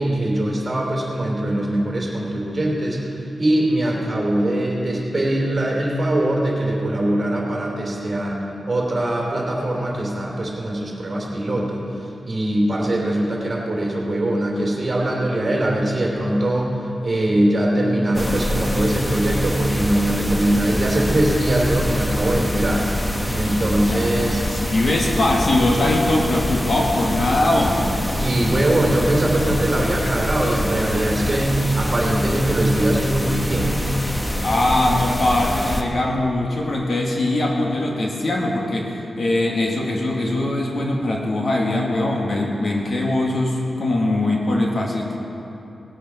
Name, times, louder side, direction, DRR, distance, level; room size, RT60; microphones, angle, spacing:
voice 1, 0.0-22.9 23.3-24.4 28.1-33.8, right 1 dB, 30° right, -2 dB, 3.0 m, -22 dB
sound 1, 18.1-35.8, equal, 10° left, 1.0 m, -25 dB
voice 2, 23.9-27.9 29.5-29.6 34.4-45.2, left 1 dB, 45° left, -1 dB, 1.6 m, -21 dB
18.5 x 8.3 x 6.2 m, 2.9 s
wide cardioid pair, 135°, 0 cm